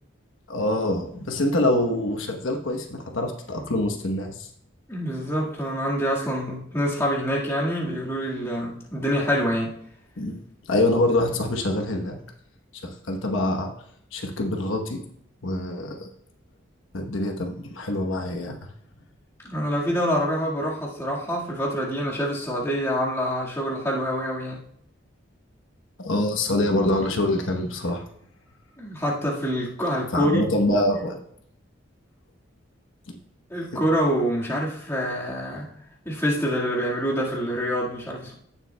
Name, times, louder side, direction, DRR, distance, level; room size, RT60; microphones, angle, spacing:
voice 1, 0.5-4.5 10.2-10.4 10.7-12.2 12.8-13.7 14.1-15.0 15.4-16.1 16.9-18.6 26.0-28.0 30.1-31.2, left 1 dB, 70° left, 2 dB, 1.1 m, -25 dB
voice 2, 4.9-9.7 19.4-24.6 28.8-30.4 33.5-35.7 36.0-38.3, equal, 15° left, -4 dB, 1.8 m, -26 dB
16.0 x 7.2 x 2.3 m, 0.69 s
head